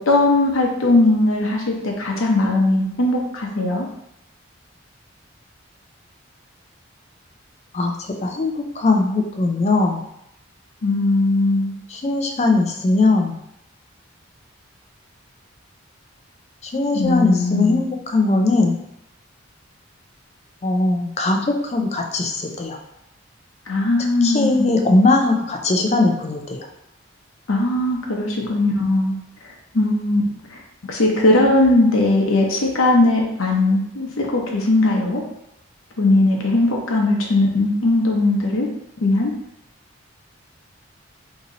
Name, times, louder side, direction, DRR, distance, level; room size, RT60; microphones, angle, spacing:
voice 1, 0.0-3.9 10.8-11.7 16.9-17.8 23.7-24.8 27.5-29.2 29.7-30.2 30.5-35.2 36.0-38.7 39.0-39.3, left 2 dB, 90° left, -1 dB, 0.8 m, -19 dB
voice 2, 7.7-10.0 11.9-13.3 16.6-18.8 20.6-22.8 24.2-26.7, left 2 dB, 30° left, 3 dB, 0.4 m, -20 dB
2.9 x 2.8 x 3.8 m, 0.80 s
head